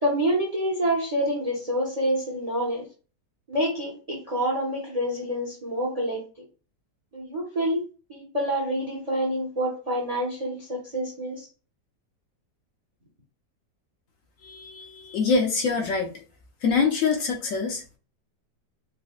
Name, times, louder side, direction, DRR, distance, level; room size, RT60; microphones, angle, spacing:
voice 1, 0.0-2.8 3.5-6.2 7.1-7.8 8.1-11.5, equal, 40° right, -2 dB, 0.5 m, -27 dB
voice 2, 14.4-16.2 16.6-18.0, left 4 dB, 65° left, 3 dB, 0.8 m, -25 dB
4.0 x 2.1 x 2.3 m, 0.35 s
omnidirectional pair, 1.8 m